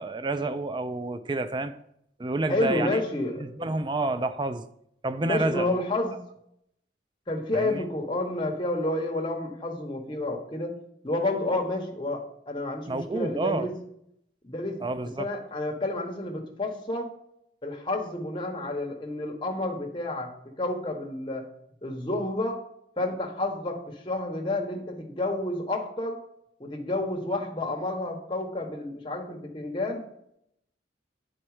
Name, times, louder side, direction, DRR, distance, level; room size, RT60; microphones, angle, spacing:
voice 1, 0.0-1.7 2.2-3.0 3.4-4.7 5.0-5.8 7.5-7.8 12.9-13.7 14.8-15.3, right 2 dB, 25° right, 0.4 m, -29 dB
voice 2, 2.5-3.8 5.2-6.2 7.3-10.7 11.0-13.7 14.4-14.8 15.2-17.1 17.6-21.4 21.8-22.6 23.0-26.2 26.6-30.0, left 2 dB, 25° left, 1.1 m, -30 dB
9.5 x 4.4 x 4.8 m
head